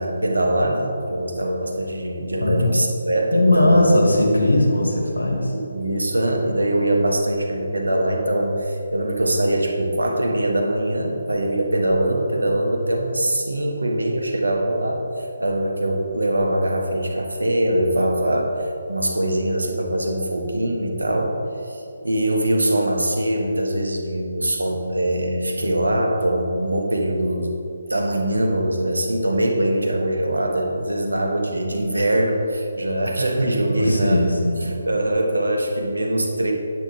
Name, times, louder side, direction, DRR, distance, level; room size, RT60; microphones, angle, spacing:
voice 1, 0.0-3.8 5.5-21.4 21.6-27.6 27.9-34.2 34.6-36.5, right 1 dB, 75° right, 1 dB, 1.2 m, -22 dB
voice 2, 2.4-2.8 3.3-5.5 33.8-34.7, left 1 dB, 80° left, -1 dB, 1.8 m, -18 dB
8.7 x 8.1 x 3.3 m, 2.6 s
figure-of-eight pair, 145°, 0 cm